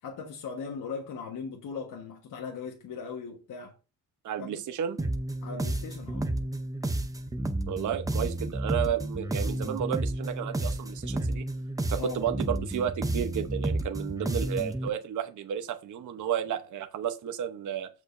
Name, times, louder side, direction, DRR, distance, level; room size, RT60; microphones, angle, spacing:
voice 1, 0.0-3.8 4.4-4.6 5.4-6.3 12.0-12.3, left 5 dB, 60° left, 1.4 m, -38 dB
voice 2, 4.2-5.0 7.7-11.4 11.9-17.9, right 9 dB, 55° right, 0.9 m, -32 dB
sound 1, 5.0-14.9, right 1 dB, 10° right, 0.6 m, -31 dB
15.0 x 5.2 x 2.6 m
cardioid pair, 170°, 36 cm